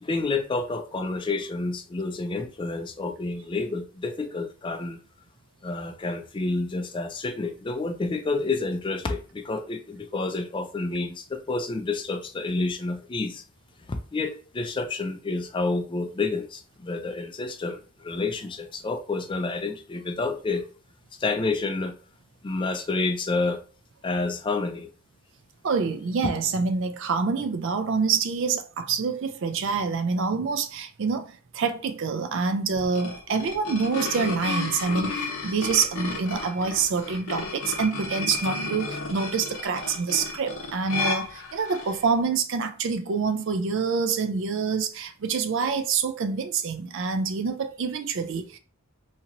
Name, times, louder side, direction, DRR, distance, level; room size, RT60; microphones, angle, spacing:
voice 1, 0.0-5.0 5.6-13.4 13.9-20.7 21.2-22.0 22.4-23.6 24.0-24.9, left 3 dB, 20° left, 0.3 m, -29 dB
voice 2, 25.6-48.6, right 5 dB, 55° right, 0.4 m, -26 dB
sound 1, 32.7-42.0, left 3 dB, 75° left, 0.8 m, -33 dB
2.9 x 2.8 x 2.5 m
head